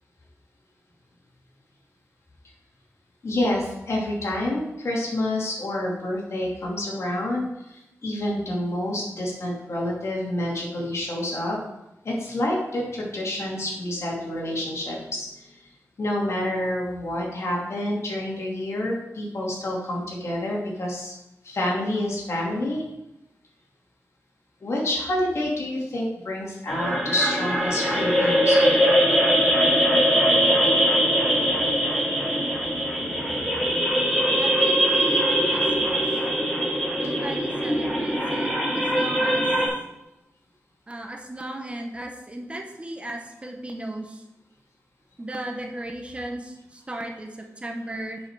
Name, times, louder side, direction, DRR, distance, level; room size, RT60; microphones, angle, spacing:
voice 1, 3.2-11.6 12.0-15.6 16.0-21.1 21.4-22.8 24.6-28.9, left 1 dB, 60° left, -2 dB, 3.0 m, -28 dB
sound 1, 26.7-39.7, equal, 5° left, 3.2 m, -22 dB
voice 2, 34.3-36.0 37.0-39.5 40.9-44.2 45.2-48.2, right 1 dB, 20° right, 3 dB, 1.1 m, -36 dB
10.0 x 5.7 x 4.9 m, 0.90 s
wide cardioid pair, 105°, 5 cm